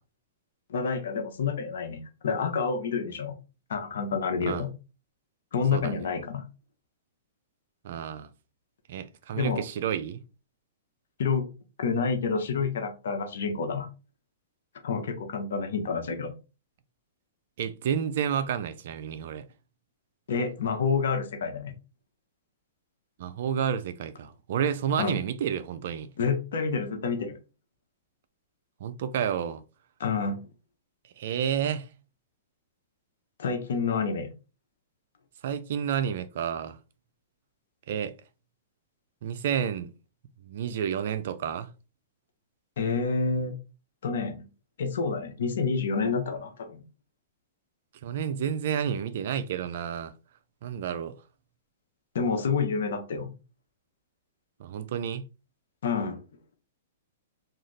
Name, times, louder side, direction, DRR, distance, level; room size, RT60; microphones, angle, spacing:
voice 1, 0.7-3.3 3.7-4.7 5.5-6.4 9.4-9.6 11.2-11.5 11.8-13.9 14.8-16.3 20.3-21.7 25.0-25.2 26.2-27.4 30.0-30.4 33.4-34.3 42.8-43.5 44.0-44.4 44.8-46.8 52.1-53.3 55.8-56.2, left 5 dB, 70° left, 0.8 m, -28 dB
voice 2, 5.7-6.0 7.8-8.3 8.9-10.2 17.6-19.5 23.2-26.1 28.8-29.6 31.2-31.9 35.4-36.8 37.9-38.1 39.2-39.9 40.4-41.7 48.0-50.1 50.6-51.2 54.6-55.3, right 8 dB, 60° right, 0.4 m, -30 dB
2.6 x 2.4 x 3.2 m
hypercardioid pair, 130°, 0 cm